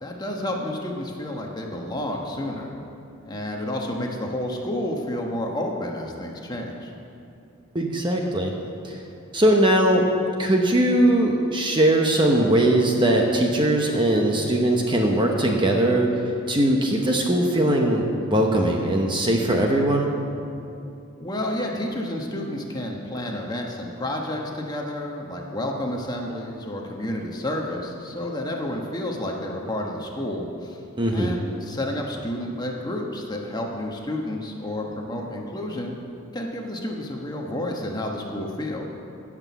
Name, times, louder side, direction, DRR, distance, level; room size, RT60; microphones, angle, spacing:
voice 1, 0.0-2.7 3.2-6.9 21.2-30.8 31.1-36.0 36.3-38.8, left 1 dB, 20° left, 0 dB, 1.1 m, -30 dB
voice 2, 7.7-8.5 8.8-9.0 9.3-10.1 10.4-16.1 16.5-20.1 31.0-31.3, right 1 dB, 20° right, 1 dB, 0.9 m, -20 dB
16.5 x 6.1 x 6.9 m, 2.7 s
head